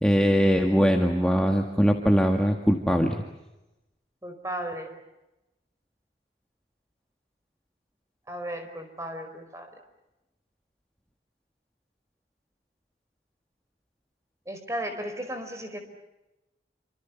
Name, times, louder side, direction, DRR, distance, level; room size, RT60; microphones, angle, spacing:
voice 1, 0.0-3.2, equal, 5° left, 2 dB, 1.9 m, -21 dB
voice 2, 4.2-4.9 8.3-9.7 14.5-15.8, right 1 dB, 15° right, 7 dB, 5.0 m, -35 dB
28.5 x 26.5 x 7.2 m, 0.98 s
head